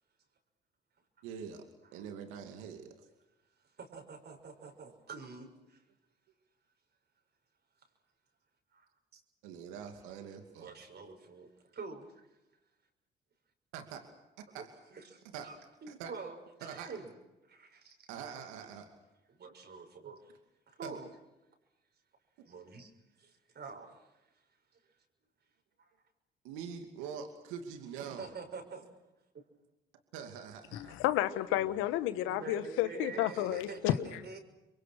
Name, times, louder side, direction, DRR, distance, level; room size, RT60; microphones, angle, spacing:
voice 1, 1.2-1.6 1.9-3.1 9.4-10.7 13.7-14.0 14.5-14.7 15.3-15.5 15.9-16.1 16.6-16.9 18.1-18.9 20.8-20.9 26.4-28.3 30.1-31.0 33.3-33.6, right 7 dB, 90° right, 2.6 m, -44 dB
voice 2, 3.8-5.8 8.7-8.9 9.1-9.2 10.6-12.3 14.5-14.6 14.9-15.5 15.8-17.1 17.5-18.1 19.3-20.3 20.7-21.1 22.4-22.9 23.2-24.1 25.8-25.9 28.1-28.9 29.3-29.4 32.2-34.4, right 4 dB, 55° right, 6.4 m, -46 dB
voice 3, 30.7-34.2, left 14 dB, 85° left, 1.4 m, -31 dB
28.5 x 23.5 x 6.5 m
supercardioid pair, 60°, 20 cm